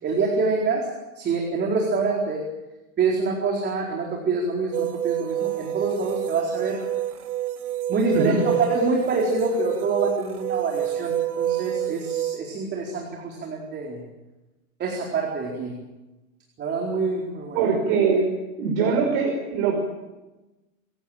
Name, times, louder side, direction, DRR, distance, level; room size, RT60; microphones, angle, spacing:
voice 1, 0.0-0.9 1.1-2.4 3.0-6.8 7.9-14.0 14.8-15.7 16.6-17.6, right 4 dB, 25° right, 0 dB, 4.4 m, -26 dB
sound 1, 4.7-12.4, right 12 dB, 85° right, 2.0 m, -28 dB
voice 2, 17.5-18.2 18.6-19.8, right 5 dB, 45° right, 2 dB, 5.7 m, -22 dB
27.5 x 16.5 x 8.9 m, 1.1 s
hypercardioid pair, 140°, 44 cm